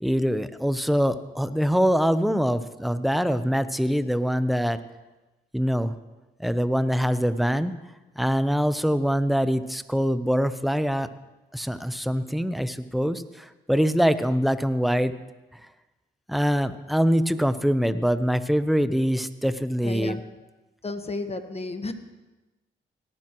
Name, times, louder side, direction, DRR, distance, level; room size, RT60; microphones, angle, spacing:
voice 1, 0.0-4.8 5.5-5.9 6.4-7.7 8.2-11.1 11.5-15.1 16.3-20.2, equal, ahead, 12 dB, 0.8 m, -24 dB
voice 2, 19.8-20.2 20.8-21.9, left 2 dB, 30° left, 8 dB, 1.4 m, -32 dB
18.0 x 11.0 x 3.1 m, 1.1 s
supercardioid pair, 55°, 21 cm